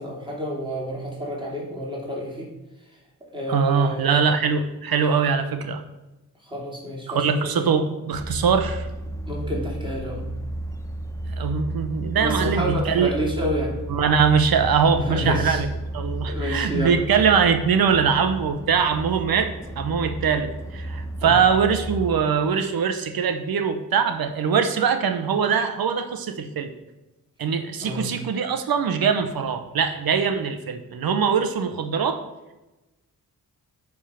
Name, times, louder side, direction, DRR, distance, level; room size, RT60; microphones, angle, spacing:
voice 1, 0.0-2.5 3.3-4.1 6.5-7.6 9.3-10.2 12.1-13.8 14.9-15.6 16.3-16.9 21.2-21.3 27.8-28.1, equal, 15° right, -4 dB, 2.9 m, -29 dB
voice 2, 3.5-5.8 7.1-8.9 11.4-13.1 13.9-15.7 15.9-26.7 27.4-32.2, right 6 dB, 80° right, 8 dB, 0.8 m, -22 dB
sound 1, 8.1-22.1, right 1 dB, 10° left, 0.7 m, -32 dB
9.9 x 3.6 x 5.7 m, 1.0 s
cardioid pair, 80°, 35 cm